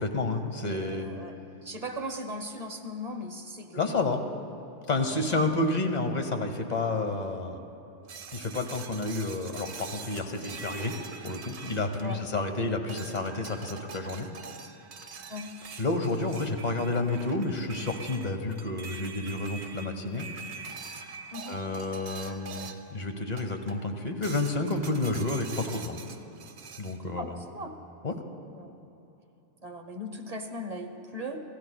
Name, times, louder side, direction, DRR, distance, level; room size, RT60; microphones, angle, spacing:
voice 1, 0.0-1.1 3.7-4.2 4.9-7.6 8.3-11.0 11.2-14.3 15.8-20.3 21.5-26.0 26.8-27.4 28.0-28.2, left 2 dB, 40° left, 5 dB, 1.0 m, -30 dB
voice 2, 0.6-4.0 5.1-5.2 12.0-12.3 15.3-15.5 21.3-21.6 27.1-27.7 28.6-28.7 29.6-31.4, equal, 35° right, 4 dB, 0.9 m, -38 dB
sound 1, 8.1-12.5 12.9-23.0 23.4-23.9 24.2-27.0, right 5 dB, 65° right, 1.0 m, -44 dB
27.0 x 15.0 x 2.2 m, 2.9 s
omnidirectional pair, 1.3 m